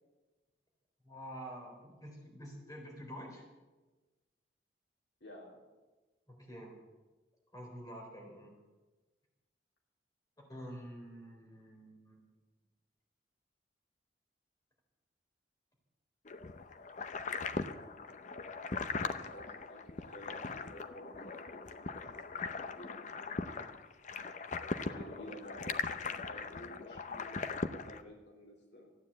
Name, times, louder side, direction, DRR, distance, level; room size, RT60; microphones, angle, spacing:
voice 1, 1.0-3.4 6.3-6.8 7.5-8.6 10.4-12.2 24.4-25.1, equal, 20° left, -1 dB, 4.1 m, -48 dB
voice 2, 5.2-5.6 18.9-22.9 24.9-25.9 26.3-28.9, left 1 dB, 80° left, 0 dB, 3.0 m, -52 dB
sound 1, 16.3-28.0, left 4 dB, 45° left, 0.7 m, -40 dB
14.5 x 9.7 x 8.4 m, 1.2 s
head